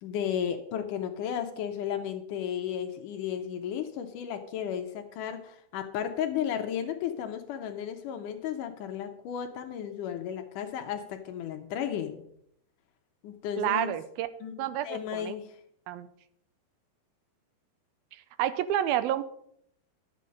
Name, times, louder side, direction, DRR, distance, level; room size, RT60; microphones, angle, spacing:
voice 1, 0.0-12.2 13.2-13.9 14.4-15.5, left 9 dB, 75° left, 6 dB, 2.2 m, -34 dB
voice 2, 13.6-14.3 14.6-15.4 15.9-16.1 18.4-19.2, right 12 dB, 85° right, 13 dB, 2.5 m, -29 dB
11.5 x 8.5 x 5.2 m, 0.70 s
omnidirectional pair, 4.2 m